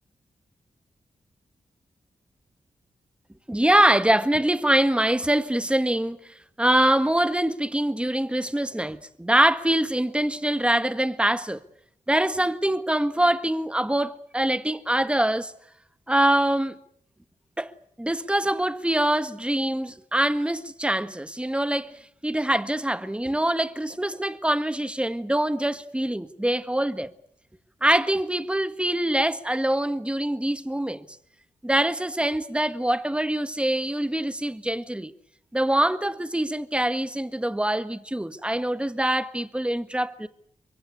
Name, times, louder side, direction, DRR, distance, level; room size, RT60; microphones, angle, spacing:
voice 1, 3.5-6.2 6.6-11.6 12.1-15.5 16.1-16.8 17.6-17.7 18.0-21.9 22.2-27.1 27.8-31.0 31.6-35.1 35.5-40.3, right 1 dB, 10° right, 1.6 m, -24 dB
24.0 x 23.5 x 8.3 m
cardioid pair, 50°, 13 cm